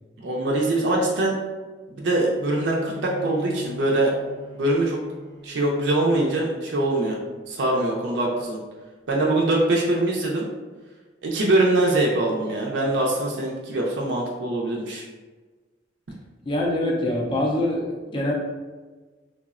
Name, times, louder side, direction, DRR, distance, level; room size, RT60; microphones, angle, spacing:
voice 1, 0.2-1.3 2.0-4.1 4.5-5.0 5.4-7.2 7.5-8.6 9.1-10.4 11.2-15.0, right 2 dB, 70° right, -3 dB, 0.4 m, -23 dB
Bowed string instrument, 2.5-7.9, left 3 dB, 85° left, 0.8 m, -42 dB
voice 2, 16.5-18.3, left 1 dB, 25° left, -2 dB, 0.3 m, -24 dB
3.3 x 2.0 x 2.4 m, 1.3 s
head